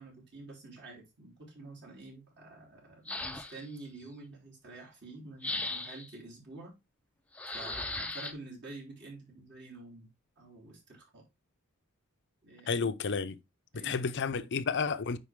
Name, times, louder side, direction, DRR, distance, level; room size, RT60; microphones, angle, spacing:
voice 1, 0.0-6.7 7.5-10.1 10.4-11.2 12.4-12.9 13.7-14.5, right 2 dB, 50° right, 3.7 m, -48 dB
sound 1, 3.1-3.8 5.4-6.1 7.4-8.3, left 2 dB, 5° left, 0.6 m, -37 dB
voice 2, 12.7-13.4 13.8-15.2, left 5 dB, 55° left, 0.6 m, -31 dB
9.6 x 4.0 x 3.6 m
head